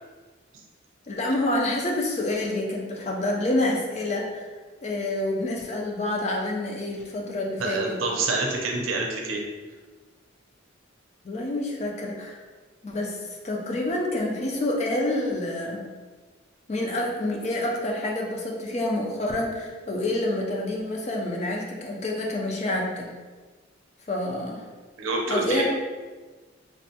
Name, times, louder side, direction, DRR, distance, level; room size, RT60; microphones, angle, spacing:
voice 1, 1.1-4.5 4.8-8.0 11.2-12.4 12.8-15.8 16.7-23.1 24.1-24.6 25.3-25.6, left 1 dB, 35° left, -1 dB, 0.4 m, -28 dB
voice 2, 7.6-9.4 25.0-25.6, right 3 dB, 90° right, 0 dB, 0.5 m, -27 dB
3.2 x 2.2 x 2.7 m, 1.3 s
head